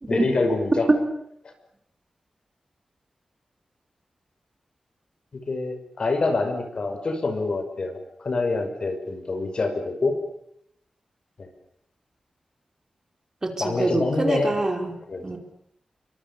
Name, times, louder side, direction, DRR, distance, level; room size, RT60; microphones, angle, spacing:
voice 1, 0.1-0.9 5.5-10.2 11.4-11.5 13.6-14.6 15.1-15.2, left 3 dB, 45° left, 7 dB, 5.7 m, -26 dB
voice 2, 13.4-14.9 15.2-15.4, right 2 dB, 25° right, 4 dB, 4.5 m, -24 dB
28.5 x 24.0 x 7.0 m, 0.72 s
wide cardioid pair, 160°, 2 cm